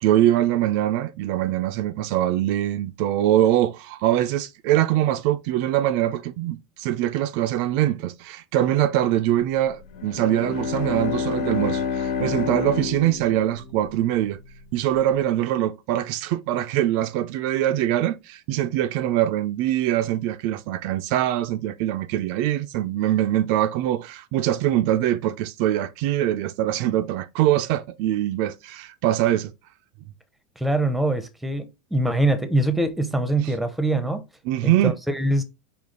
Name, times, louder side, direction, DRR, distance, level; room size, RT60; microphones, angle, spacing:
voice 1, 0.0-14.4 14.7-29.5 33.4-33.5 34.5-35.0, right 13 dB, 60° right, 0.4 m, -23 dB
Bowed string instrument, 9.9-14.5, left 6 dB, 80° left, 1.4 m, -29 dB
voice 2, 30.6-34.2 34.6-35.4, right 1 dB, 5° right, 0.6 m, -23 dB
5.0 x 2.3 x 3.7 m
supercardioid pair, 135°, 3 cm